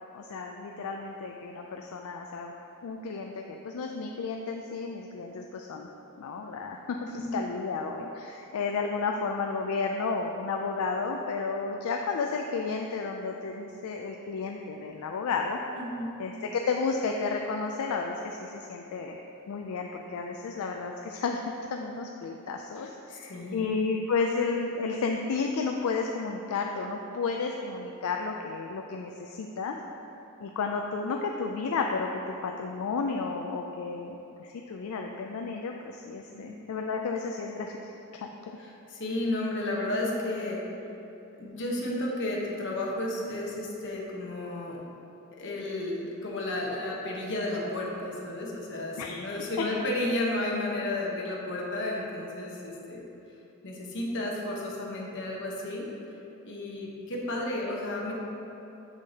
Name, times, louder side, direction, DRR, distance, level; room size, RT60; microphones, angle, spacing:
voice 1, 0.1-2.5 2.8-5.9 6.2-15.6 16.2-19.2 19.5-29.8 30.4-37.8 38.1-38.3 49.0-49.3, left 4 dB, 70° left, 2 dB, 0.4 m, -32 dB
voice 2, 15.7-16.2 23.1-23.6 36.3-36.5 38.6-40.6 41.4-44.8 45.3-53.0 53.6-55.9 56.4-58.1, left 1 dB, 55° left, -3 dB, 1.0 m, -32 dB
7.4 x 6.2 x 2.8 m, 2.9 s
head